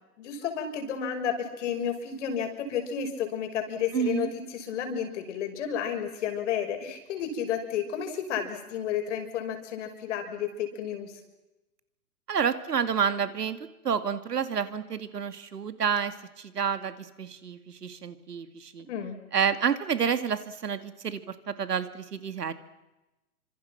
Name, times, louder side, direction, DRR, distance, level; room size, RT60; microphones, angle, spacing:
voice 1, 0.2-11.1 18.8-19.2, left 8 dB, 50° left, 5 dB, 6.2 m, -32 dB
voice 2, 3.9-4.3 12.3-13.6 13.8-18.9 19.3-22.5, right 7 dB, 85° right, 11 dB, 2.5 m, -29 dB
27.0 x 26.0 x 6.0 m, 1.0 s
hypercardioid pair, 145°, 46 cm